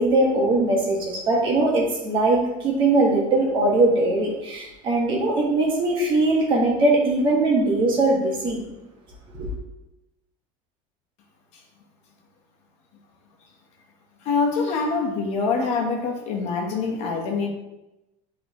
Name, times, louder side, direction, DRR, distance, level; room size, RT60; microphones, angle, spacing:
voice 1, 0.0-8.6 9.3-9.5, right 2 dB, 35° right, -2 dB, 1.5 m, -21 dB
voice 2, 14.2-17.5, left 4 dB, 50° left, 1 dB, 1.2 m, -25 dB
9.1 x 3.9 x 3.1 m, 0.96 s
cardioid pair, 170°, 15 cm